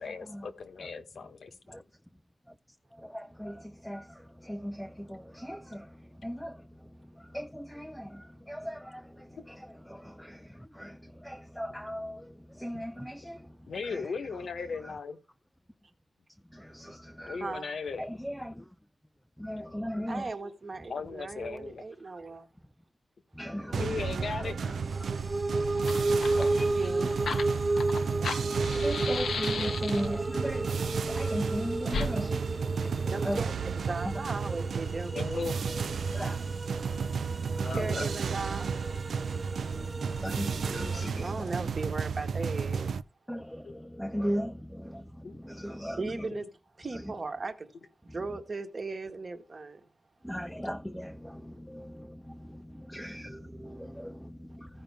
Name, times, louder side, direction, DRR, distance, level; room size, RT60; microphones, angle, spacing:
voice 1, 0.0-1.8 13.7-15.2 17.3-18.0 19.6-19.7 19.9-20.0 20.4-20.5 20.9-21.8 23.6-24.8 26.0-26.4 32.6-32.7 35.1-35.6 37.5-38.1 40.5-41.1 43.6-43.7 45.2-45.4 46.3-46.4, left 5 dB, 65° left, 1.1 m, -38 dB
voice 2, 3.0-6.9 7.2-13.6 13.9-14.1 16.5-17.4 18.0-18.6 19.4-20.3 23.4-24.7 25.0-25.1 26.1-27.1 27.7-33.4 36.0-36.5 37.0-38.1 39.7-41.5 43.3-46.3 50.2-54.8, equal, ahead, 0.4 m, -39 dB
voice 3, 20.1-22.5 26.7-27.2 33.1-35.2 37.8-38.7 41.1-42.9 45.9-46.5 46.8-47.7 48.0-49.9, right 3 dB, 35° right, 1.2 m, -37 dB
sound 1, 23.7-43.0, right 6 dB, 80° right, 0.4 m, -33 dB
sound 2, 24.8-41.1, right 2 dB, 20° right, 0.9 m, -33 dB
Fire, 25.4-25.5 25.7-30.3 31.9-32.1, left 5 dB, 85° left, 0.8 m, -35 dB
15.5 x 5.2 x 3.4 m
wide cardioid pair, 170°, 0 cm